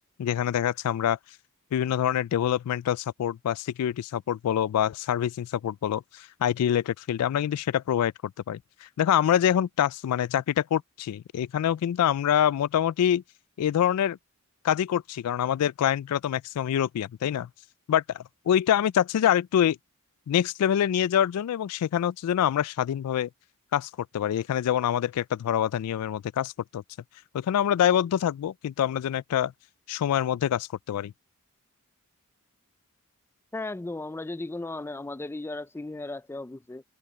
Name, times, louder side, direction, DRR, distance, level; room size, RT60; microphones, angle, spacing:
voice 1, 0.2-1.2 1.7-13.2 13.6-14.2 14.6-17.5 17.9-19.8 20.3-23.3 23.7-26.8 27.3-29.5 29.9-31.1, left 10 dB, 90° left, 0.3 m, -25 dB
voice 2, 33.5-36.8, left 2 dB, 10° left, 0.3 m, -36 dB
head